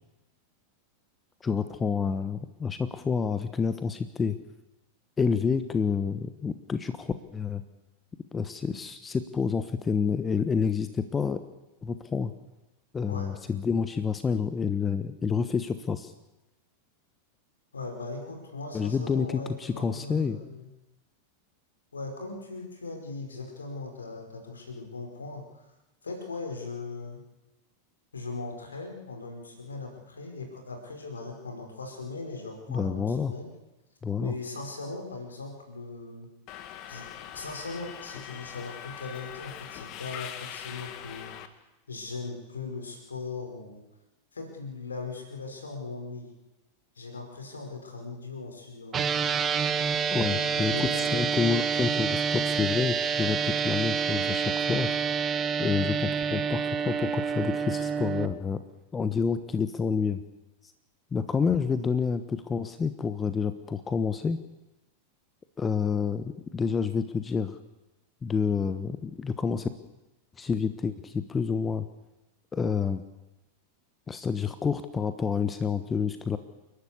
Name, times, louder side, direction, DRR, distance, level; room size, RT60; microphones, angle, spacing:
voice 1, 1.4-4.4 5.2-7.6 8.3-11.4 11.8-12.3 12.9-16.1 18.7-20.4 32.7-33.3 34.0-34.3 50.1-54.9 55.6-58.6 58.9-60.2 61.1-64.4 65.6-67.6 68.2-69.7 70.4-71.8 72.5-73.0 74.1-76.4, left 5 dB, 15° left, 11 dB, 1.1 m, -28 dB
voice 2, 17.7-20.7 21.9-25.6 26.0-27.2 28.1-33.5 34.2-36.3 36.9-37.1 37.3-41.3 41.9-43.8 44.3-46.3 46.9-49.4 50.1-51.5, left 3 dB, 75° left, 4 dB, 5.1 m, -39 dB
Subway metro underground, 36.5-41.5, left 10 dB, 40° left, 1.7 m, -42 dB
sound 1, 48.9-58.3, right 6 dB, 25° right, 1.2 m, -28 dB
29.5 x 12.0 x 8.3 m, 1.0 s
figure-of-eight pair, 90°, 0 cm